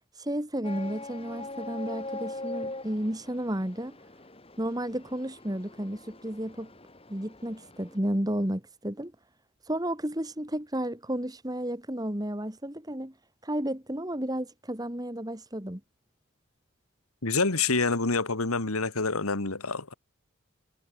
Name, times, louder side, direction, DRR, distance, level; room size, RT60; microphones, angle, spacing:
voice 1, 0.2-4.0 4.6-6.7 7.1-9.1 9.7-13.1 13.4-15.8, right 1 dB, 20° right, 2.1 m, -32 dB
sound 1, 0.6-8.0, left 2 dB, 25° left, 3.2 m, -42 dB
voice 2, 17.2-19.9, left 3 dB, 90° left, 2.2 m, -27 dB
head